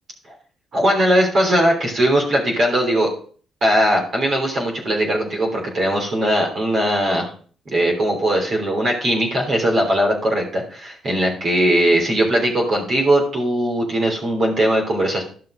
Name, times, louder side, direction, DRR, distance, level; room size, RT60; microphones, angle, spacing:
voice 1, 0.7-3.1 3.6-7.3 7.7-15.2, right 1 dB, 50° right, 0 dB, 3.4 m, -19 dB
12.0 x 5.8 x 5.0 m, 0.43 s
cardioid pair, 90°, 0 cm